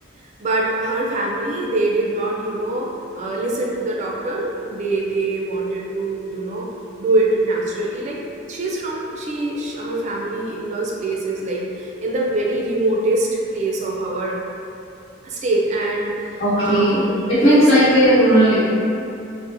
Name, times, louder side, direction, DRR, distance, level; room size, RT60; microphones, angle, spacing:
voice 1, 0.4-2.9 3.2-6.6 7.0-8.2 8.5-14.4 15.2-17.6, right 2 dB, 35° right, -2 dB, 0.3 m, -24 dB
sound 1, 2.0-12.0, equal, 15° left, 1.0 m, -41 dB
voice 2, 16.4-18.6, equal, 80° left, -12 dB, 1.2 m, -15 dB
2.7 x 2.1 x 2.5 m, 2.6 s
head